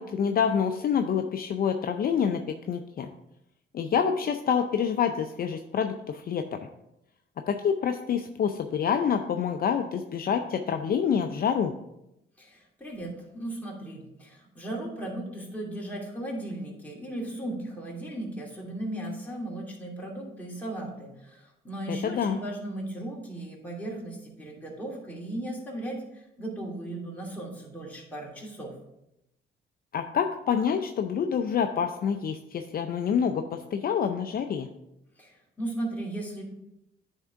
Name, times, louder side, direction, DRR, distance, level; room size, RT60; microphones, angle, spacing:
voice 1, 0.0-3.1 3.7-6.4 7.5-11.7 21.9-22.4 29.9-34.7, left 7 dB, 50° left, 6 dB, 0.5 m, -27 dB
voice 2, 12.4-28.8 35.2-36.4, right 1 dB, 10° left, -4 dB, 2.7 m, -36 dB
9.7 x 3.7 x 4.6 m, 0.87 s
cardioid pair, 90°, 20 cm